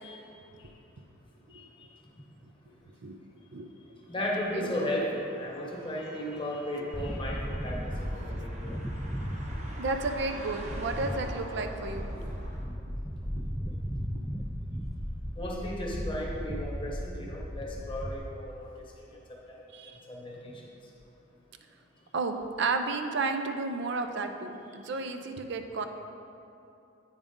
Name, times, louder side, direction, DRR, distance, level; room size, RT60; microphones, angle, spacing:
voice 1, 4.1-8.8 15.4-18.7 19.5-19.6 20.1-20.6, left 1 dB, 25° left, -3 dB, 1.0 m, -35 dB
sound 1, 4.6-12.6, right 1 dB, 35° right, 0.8 m, -46 dB
sound 2, 6.9-18.2, equal, ahead, 0.3 m, -36 dB
voice 2, 8.0-8.4 9.8-12.1 19.7-19.9 22.1-25.9, right 3 dB, 65° right, 7 dB, 0.5 m, -32 dB
8.7 x 5.2 x 3.6 m, 2.7 s
head